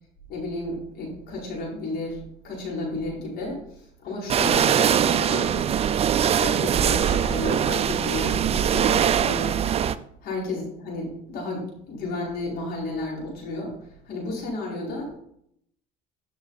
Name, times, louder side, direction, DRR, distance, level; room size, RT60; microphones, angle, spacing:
voice 1, 0.3-2.2 2.4-5.7 6.3-9.6 10.2-15.2, left 2 dB, 55° left, -3 dB, 5.0 m, -32 dB
sound 1, 4.3-10.0, right 9 dB, 30° right, 0.5 m, -22 dB
sound 2, 7.0-9.3, left 3 dB, 35° left, 1.4 m, -47 dB
14.0 x 7.2 x 4.1 m, 0.72 s
cardioid pair, 120°, 19 cm